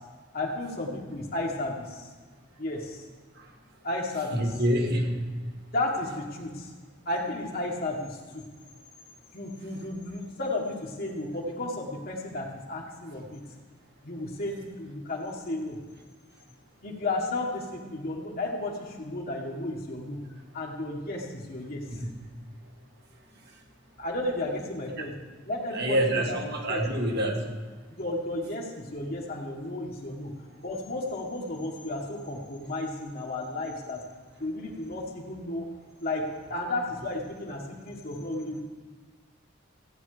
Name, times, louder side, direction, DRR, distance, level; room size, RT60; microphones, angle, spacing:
voice 1, 0.3-2.1 2.6-3.0 3.8-4.4 5.7-6.7 7.0-8.5 9.3-13.4 14.0-15.8 16.8-20.2 20.5-21.8 24.0-25.1 25.4-26.4 26.7-26.9 27.9-30.3 30.6-34.0 34.4-35.7 36.0-38.6, left 2 dB, 50° left, -2 dB, 1.7 m, -33 dB
voice 2, 4.3-5.2 21.9-22.1 25.7-27.4, right 1 dB, 55° right, 1 dB, 1.9 m, -26 dB
15.5 x 8.8 x 5.0 m, 1.5 s
head